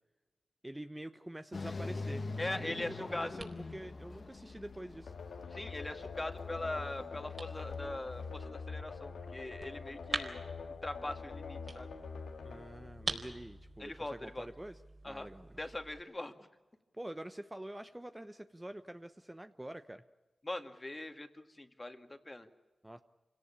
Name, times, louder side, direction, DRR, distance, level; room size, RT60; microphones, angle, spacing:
voice 1, 0.6-3.0 3.2-5.1 12.4-14.8 15.0-15.5 16.9-20.0 22.8-23.0, right 1 dB, 15° right, 9 dB, 0.9 m, -46 dB
sound 1, 1.5-8.4, left 3 dB, 55° left, 1.4 m, -44 dB
voice 2, 2.4-3.4 5.5-10.4 10.8-11.9 13.8-14.5 15.0-15.3 15.6-16.3 20.4-22.5, left 2 dB, 25° left, 7 dB, 2.1 m, -41 dB
sound 2, 2.5-16.0, right 2 dB, 40° right, 4.2 m, -47 dB
sound 3, 5.1-13.8, left 5 dB, 85° left, 2.0 m, -45 dB
26.0 x 17.5 x 8.7 m, 1.2 s
cardioid pair, 50°, 0 cm